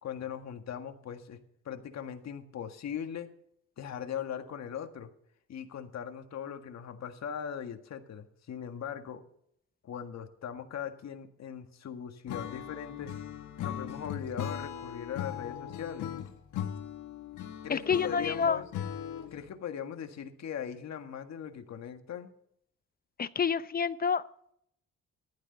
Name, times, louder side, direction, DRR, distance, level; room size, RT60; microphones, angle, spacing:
voice 1, 0.0-1.4 1.6-3.3 3.8-5.1 5.5-9.2 9.8-13.1 13.6-16.1 17.6-18.6 19.3-22.3, left 8 dB, 60° left, 7 dB, 1.7 m, -40 dB
Acoustic guitar / Strum, 12.3-19.5, left 9 dB, 75° left, 1.6 m, -39 dB
voice 2, 17.7-18.6 23.2-24.2, left 6 dB, 30° left, 15 dB, 0.7 m, -28 dB
14.5 x 12.0 x 4.0 m, 0.70 s
cardioid pair, 90°, 30 cm